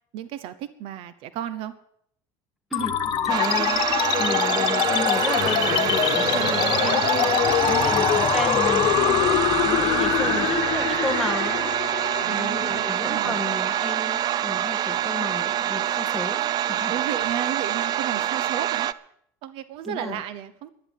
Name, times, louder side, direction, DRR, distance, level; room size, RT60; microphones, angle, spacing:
voice 1, 0.1-1.7 6.2-7.9 10.2-10.4 12.2-13.4 16.9-18.9 19.4-20.7, right 10 dB, 65° right, 14 dB, 0.9 m, -34 dB
sound 1, 2.7-13.7, left 10 dB, 50° left, 1.4 m, -24 dB
voice 2, 2.7-7.1 7.6-16.9 19.8-20.2, left 1 dB, ahead, 6 dB, 1.9 m, -33 dB
sound 2, 3.3-18.9, right 11 dB, 45° right, 0.5 m, -26 dB
11.5 x 11.0 x 7.5 m, 0.70 s
cardioid pair, 125°, 10 cm